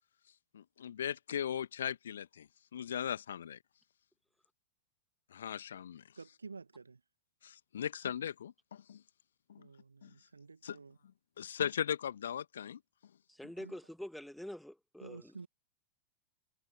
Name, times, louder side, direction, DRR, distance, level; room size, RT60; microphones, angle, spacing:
voice 1, 0.5-3.6 5.3-6.0 7.4-9.0 9.5-9.6 10.0-10.1 10.6-10.8 11.4-12.8, left 9 dB, 65° left, 1.5 m, -38 dB
voice 2, 6.2-7.0 9.6-11.0 13.6-13.7 15.0-15.5, right 4 dB, 75° right, 1.6 m, -50 dB
voice 3, 13.3-15.5, left 1 dB, ahead, 1.5 m, -46 dB
figure-of-eight pair, 90°, 0 cm